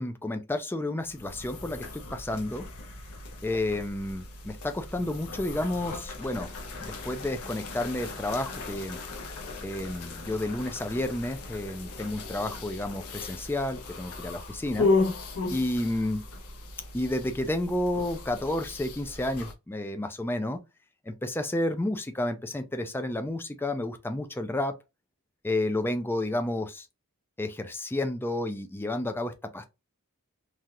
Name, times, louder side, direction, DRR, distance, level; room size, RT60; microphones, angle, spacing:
voice 1, 0.0-2.7 3.4-6.5 6.8-9.0 9.6-14.9 15.5-16.2 16.9-20.6 21.1-24.7 25.4-26.9 27.4-29.6, left 1 dB, 10° left, 0.3 m, -31 dB
sound 1, 1.0-19.5, left 3 dB, 75° left, 0.7 m, -35 dB
3.2 x 2.4 x 2.7 m
head